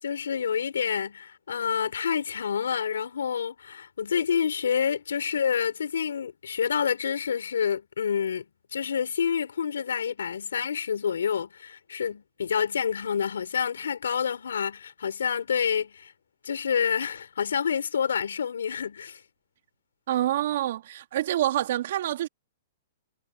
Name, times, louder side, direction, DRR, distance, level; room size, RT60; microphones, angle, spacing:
voice 1, 0.0-16.1 16.4-19.2, left 7 dB, 90° left, 5.7 m, -28 dB
voice 2, 20.1-22.3, right 13 dB, 60° right, 2.7 m, -27 dB
hypercardioid pair, 145°, 0 cm